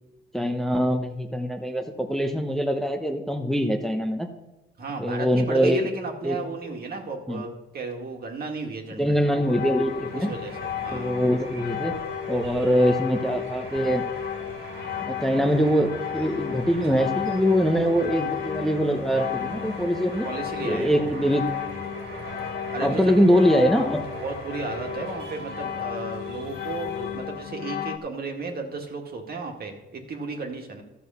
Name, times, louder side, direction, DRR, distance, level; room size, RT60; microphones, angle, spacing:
voice 1, 0.3-4.3 5.0-5.9 6.2-6.4 7.3-7.4 9.0-10.3 10.9-11.9 12.3-14.0 15.0-20.3 20.6-21.4 22.8-24.0, equal, ahead, 4 dB, 0.9 m, -23 dB
voice 2, 4.8-9.2 10.1-11.1 20.2-21.3 22.7-23.4 24.1-30.8, right 3 dB, 50° right, 3 dB, 1.9 m, -34 dB
sound 1, 9.1-27.6, right 3 dB, 85° right, 2.8 m, -41 dB
sound 2, 9.2-28.0, left 10 dB, 60° left, 0.9 m, -34 dB
13.0 x 6.2 x 5.6 m, 1.0 s
cardioid pair, 90°, 20 cm